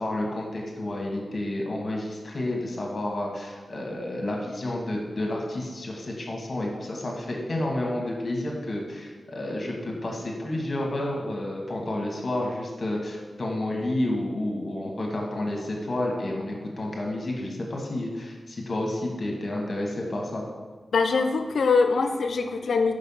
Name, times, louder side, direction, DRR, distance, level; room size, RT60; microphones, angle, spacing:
voice 1, 0.0-20.4, left 1 dB, 45° left, -1 dB, 1.4 m, -30 dB
voice 2, 20.9-22.9, left 4 dB, 80° left, 7 dB, 0.6 m, -23 dB
5.5 x 5.2 x 5.6 m, 1.4 s
wide cardioid pair, 110°, 0 cm